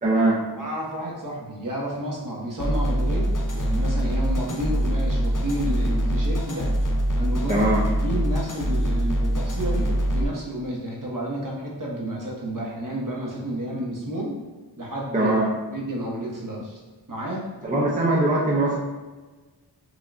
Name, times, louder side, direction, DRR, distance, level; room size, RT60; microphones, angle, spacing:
voice 1, 0.0-0.4 7.5-7.8 15.1-15.5 17.6-18.8, right 2 dB, 20° right, -4 dB, 0.6 m, -21 dB
voice 2, 0.6-6.7 7.1-14.4 14.8-15.3 15.7-16.8 17.1-17.4, right 1 dB, 50° right, -4 dB, 1.0 m, -31 dB
sound 1, 2.6-10.2, equal, 50° left, 0.6 m, -24 dB
5.0 x 2.3 x 2.5 m, 1.3 s
wide cardioid pair, 40°, 42 cm